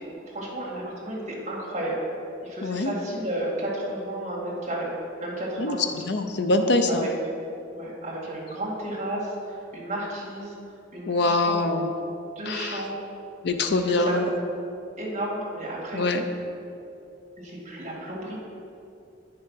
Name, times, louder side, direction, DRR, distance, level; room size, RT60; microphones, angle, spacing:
voice 1, 0.3-2.0 2.4-4.9 5.2-5.8 6.9-7.1 7.7-10.5 10.9-11.7 12.4-13.0 13.9-14.2 15.0-16.1 17.4-18.3, right 1 dB, 35° right, -5 dB, 2.0 m, -32 dB
voice 2, 2.6-2.9 5.6-7.1 11.1-11.9 12.5-12.8 13.4-14.3 15.9-16.2, left 2 dB, 55° left, 6 dB, 0.5 m, -24 dB
8.9 x 5.5 x 5.6 m, 2.7 s
head